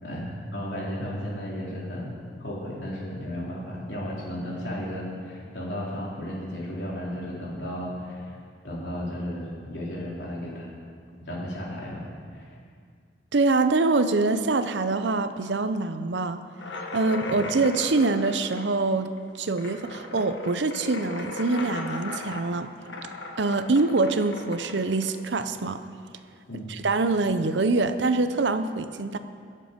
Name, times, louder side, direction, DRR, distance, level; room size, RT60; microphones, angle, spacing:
voice 1, 0.0-2.1 2.4-8.4 8.6-10.7 11.3-12.0 12.3-12.5 17.3-17.4 26.5-26.7, equal, 65° left, -5 dB, 3.6 m, -34 dB
voice 2, 13.3-16.4 16.9-19.1 19.4-22.7 23.4-25.8 26.5-29.2, right 3 dB, 75° right, 10 dB, 0.7 m, -24 dB
sound 1, 16.6-26.0, left 2 dB, 90° left, 1.4 m, -37 dB
22.5 x 7.6 x 5.2 m, 2.2 s
head